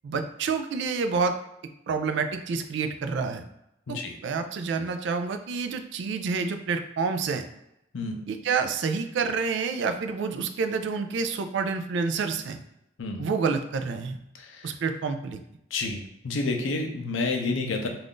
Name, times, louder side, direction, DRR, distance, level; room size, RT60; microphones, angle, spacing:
voice 1, 0.0-1.4 1.9-3.4 3.9-7.4 8.3-12.6 13.2-14.2 14.6-15.4, right 5 dB, 65° right, 7 dB, 0.3 m, -28 dB
voice 2, 14.3-14.7 15.7-17.9, left 3 dB, 80° left, 4 dB, 0.5 m, -29 dB
2.5 x 2.3 x 3.5 m, 0.84 s
head